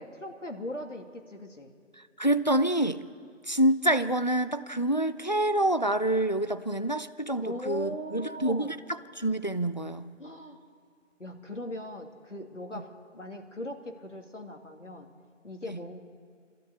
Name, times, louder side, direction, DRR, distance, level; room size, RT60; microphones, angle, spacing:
voice 1, 0.0-1.7 7.4-8.7 10.2-10.6 11.2-12.9 13.1-15.1 15.4-16.0, left 1 dB, 70° left, 3 dB, 2.8 m, -39 dB
voice 2, 2.0-3.0 3.4-10.1 12.7-12.8 15.6-15.8, right 1 dB, 35° left, 13 dB, 0.6 m, -27 dB
27.0 x 13.5 x 8.4 m, 2.1 s
figure-of-eight pair, 170°, 38 cm